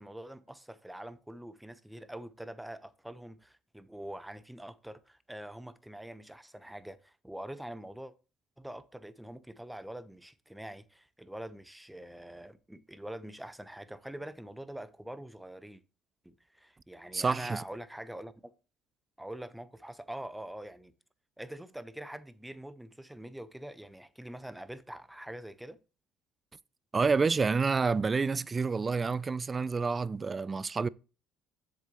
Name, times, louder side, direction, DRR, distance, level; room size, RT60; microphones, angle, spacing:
voice 1, 0.0-8.1 8.6-15.8 16.2-18.5 19.2-20.9 21.4-25.8, right 1 dB, 5° right, 0.9 m, -44 dB
voice 2, 17.1-17.6 26.9-30.9, right 4 dB, 30° right, 0.4 m, -28 dB
7.6 x 7.2 x 3.0 m
supercardioid pair, 70°, 0 cm